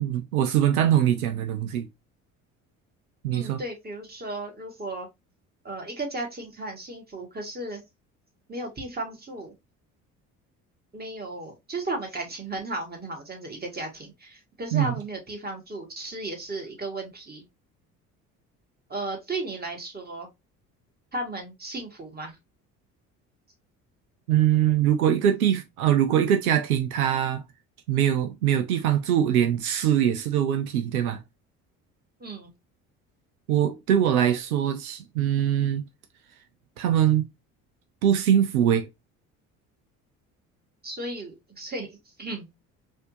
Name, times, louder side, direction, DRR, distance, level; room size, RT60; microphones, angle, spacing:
voice 1, 0.0-1.9 3.2-3.6 14.7-14.9 24.3-27.4 27.9-31.2 33.5-35.8 36.8-37.3 38.0-38.9, right 10 dB, 85° right, 0.5 m, -22 dB
voice 2, 3.3-5.1 5.6-7.8 8.5-9.5 10.9-17.4 18.9-20.3 21.1-22.3 32.2-32.5 40.8-42.5, right 2 dB, 20° right, 1.7 m, -35 dB
4.2 x 2.6 x 2.6 m
hypercardioid pair, 55°, 42 cm